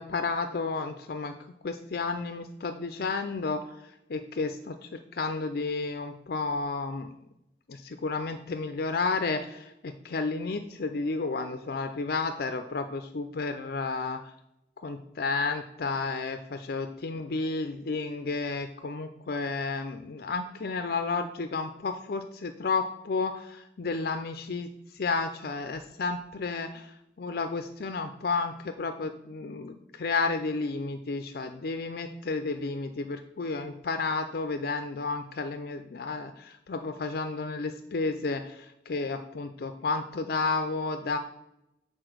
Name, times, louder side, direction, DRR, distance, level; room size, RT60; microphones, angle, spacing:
voice 1, 0.0-1.3 1.6-3.7 4.1-7.1 7.7-14.2 14.8-26.8 27.2-41.2, left 4 dB, 60° left, 7 dB, 0.5 m, -32 dB
6.8 x 4.2 x 6.1 m, 0.85 s
head